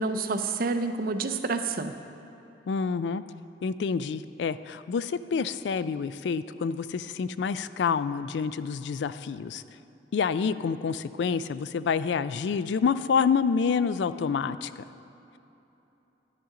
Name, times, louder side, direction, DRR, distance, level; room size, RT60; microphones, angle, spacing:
voice 1, 0.0-1.9, right 3 dB, 55° right, 8 dB, 0.6 m, -28 dB
voice 2, 2.7-3.2 3.6-9.6 10.1-14.8, left 6 dB, 70° left, 14 dB, 0.3 m, -28 dB
11.5 x 9.8 x 3.8 m, 3.0 s
head